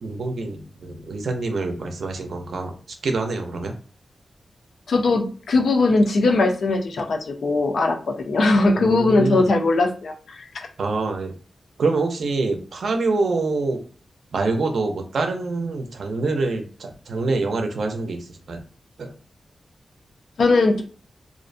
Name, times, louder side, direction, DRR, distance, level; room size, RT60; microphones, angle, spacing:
voice 1, 0.0-2.7 3.0-3.7 8.7-9.5 10.8-11.3 11.8-13.8 14.3-18.6 19.0-19.1, right 3 dB, 65° right, 4 dB, 0.5 m, -25 dB
voice 2, 4.9-10.7 20.4-20.8, left 3 dB, 75° left, 4 dB, 0.4 m, -20 dB
2.5 x 2.0 x 2.5 m, 0.41 s
wide cardioid pair, 170°, 0 cm